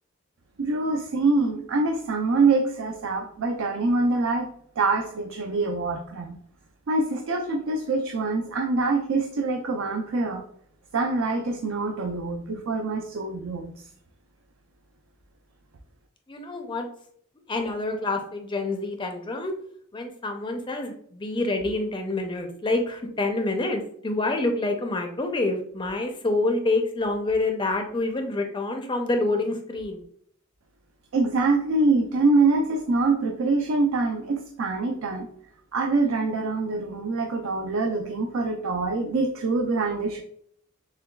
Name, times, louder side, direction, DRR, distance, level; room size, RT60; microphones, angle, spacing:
voice 1, 0.6-4.5 4.8-6.4 6.9-10.4 10.9-13.7 31.1-35.3 35.7-40.2, right 3 dB, 70° right, 3 dB, 0.4 m, -25 dB
voice 2, 16.3-16.9 17.5-19.5 19.9-30.0, left 2 dB, 20° left, 4 dB, 0.4 m, -27 dB
6.6 x 2.2 x 2.3 m, 0.64 s
head